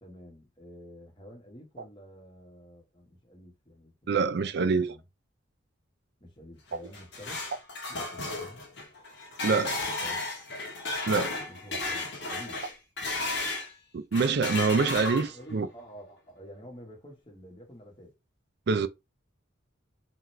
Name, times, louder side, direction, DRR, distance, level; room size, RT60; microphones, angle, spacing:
voice 1, 0.0-5.0 6.2-7.4 7.9-8.6 9.7-10.2 11.5-12.6 15.0-18.1, equal, 25° left, 1.4 m, -49 dB
voice 2, 4.1-5.0 9.4-9.7 11.1-11.4 13.9-15.7 18.7-18.9, right 4 dB, 55° right, 0.4 m, -25 dB
sound 1, 6.7-13.7 14.1-15.5, left 2 dB, 60° left, 1.3 m, -34 dB
3.8 x 3.0 x 3.2 m
head